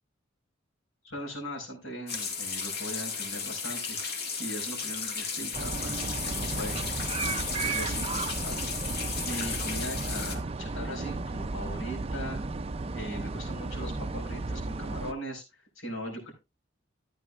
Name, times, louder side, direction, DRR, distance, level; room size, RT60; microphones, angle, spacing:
voice 1, 1.0-4.0 4.4-5.9 6.2-6.7 7.2-8.7 9.2-12.4 12.9-16.3, equal, 90° left, 0 dB, 4.9 m, -39 dB
sound 1, 2.1-10.4, left 5 dB, 50° left, 1.7 m, -34 dB
sound 2, 5.5-15.1, right 3 dB, 30° right, 0.4 m, -34 dB
13.5 x 9.0 x 2.4 m, 0.25 s
head